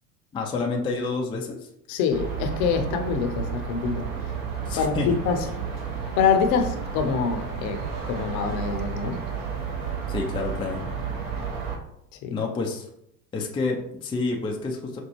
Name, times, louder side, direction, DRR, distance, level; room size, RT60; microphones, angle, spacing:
voice 1, 0.3-1.7 4.7-5.2 10.1-10.8 12.3-12.9 13.3-15.0, left 3 dB, 10° left, 0 dB, 0.4 m, -28 dB
voice 2, 1.9-4.1 4.8-5.4 6.2-9.2 12.2-12.4, left 6 dB, 50° left, 6 dB, 0.7 m, -25 dB
sound 1, 2.1-11.8, right 6 dB, 50° right, 1.0 m, -32 dB
5.2 x 2.2 x 3.0 m, 0.76 s
hypercardioid pair, 80°, 44 cm